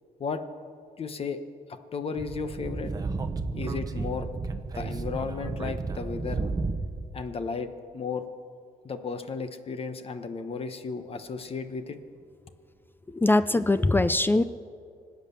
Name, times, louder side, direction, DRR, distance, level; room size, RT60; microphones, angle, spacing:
voice 1, 1.0-1.4 1.7-2.9 3.6-4.3 4.7-6.4 7.1-7.7 7.9-8.3 8.8-12.0, left 5 dB, 40° left, 9 dB, 1.1 m, -34 dB
Speech / Wind, 2.2-7.1, right 3 dB, 25° right, 0.9 m, -32 dB
voice 2, 13.1-14.4, left 2 dB, 15° left, 13 dB, 0.4 m, -22 dB
25.0 x 8.4 x 7.0 m, 2.3 s
cardioid pair, 125°, 15 cm